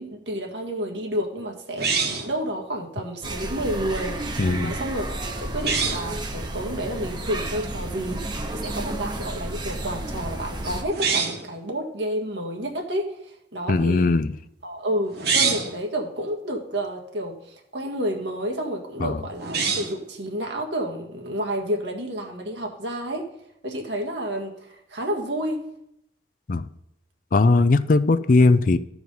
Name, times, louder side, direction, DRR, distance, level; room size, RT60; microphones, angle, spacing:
voice 1, 0.0-4.2 4.6-14.1 14.6-23.3 23.6-25.6, equal, 85° right, 2 dB, 1.7 m, -30 dB
sound 1, 1.8-2.4 5.5-6.1 10.9-11.5 15.1-15.8 19.4-20.0, right 5 dB, 60° right, 1.5 m, -25 dB
sound 2, 3.2-10.8, right 1 dB, 25° right, 0.9 m, -32 dB
voice 2, 4.4-4.7 13.7-14.3 19.0-19.2 26.5-26.7 27.3-28.8, left 3 dB, 50° left, 12 dB, 0.5 m, -19 dB
13.5 x 4.8 x 5.4 m, 0.78 s
head